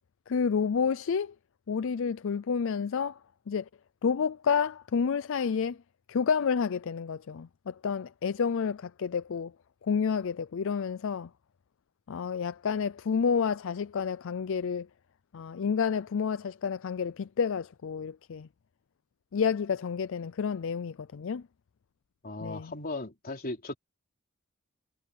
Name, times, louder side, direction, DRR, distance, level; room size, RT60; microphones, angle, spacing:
voice 1, 0.3-1.3 1.7-3.2 3.5-3.7 4.0-5.8 6.1-9.5 9.8-11.3 12.1-14.9 15.3-18.5 19.3-21.4 22.4-22.7, left 6 dB, 65° left, 0.4 m, -29 dB
voice 2, 22.2-23.7, left 2 dB, 45° left, 3.8 m, -37 dB
head